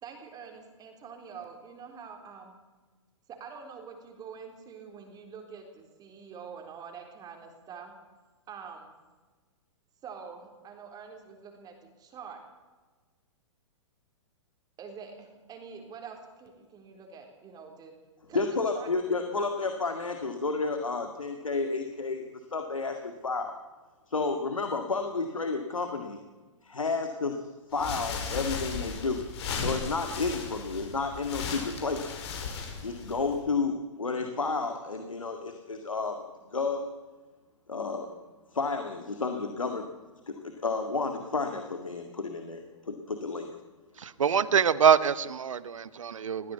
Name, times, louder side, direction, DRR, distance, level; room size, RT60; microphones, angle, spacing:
voice 1, 0.0-2.6 3.3-7.9 8.5-8.9 10.0-12.4 14.8-17.9 18.2-18.4 18.7-19.7, right 6 dB, 25° right, 3 dB, 3.8 m, -46 dB
voice 2, 18.3-23.6 24.1-26.2 26.6-27.4 27.7-29.2 29.6-32.1 32.8-36.2 36.5-36.9 37.7-38.1 38.5-39.9 40.3-43.5, left 4 dB, 90° left, 5 dB, 2.1 m, -31 dB
sound 1, 27.7-33.4, left 5 dB, 55° left, 5.5 m, -36 dB
voice 3, 44.0-46.5, right 7 dB, 80° right, 16 dB, 1.0 m, -24 dB
21.0 x 15.0 x 8.3 m, 1.3 s
hypercardioid pair, 115°, 16 cm